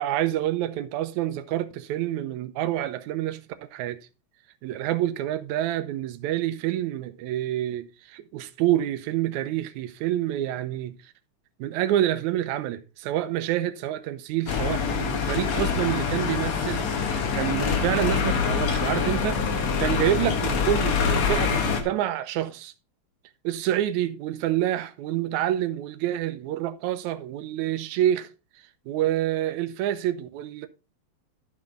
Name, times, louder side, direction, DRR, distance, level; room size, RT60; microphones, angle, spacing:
voice 1, 0.0-4.0 4.6-11.1 11.6-22.7 23.4-28.3 28.9-30.7, right 12 dB, 85° right, 2.1 m, -27 dB
sound 1, 14.5-21.8, left 6 dB, 65° left, 2.5 m, -25 dB
12.0 x 6.0 x 3.8 m
omnidirectional pair, 3.3 m